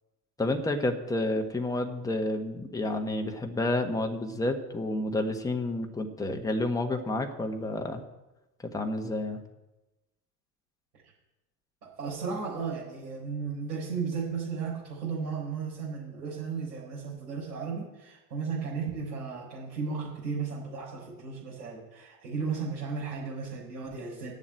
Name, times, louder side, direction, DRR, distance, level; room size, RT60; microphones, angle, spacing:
voice 1, 0.4-8.0 8.6-9.4, left 2 dB, 5° left, 4 dB, 1.3 m, -30 dB
voice 2, 12.0-24.3, right 5 dB, 80° right, -8 dB, 4.2 m, -35 dB
9.8 x 7.3 x 9.1 m, 1.0 s
hypercardioid pair, 80°, 48 cm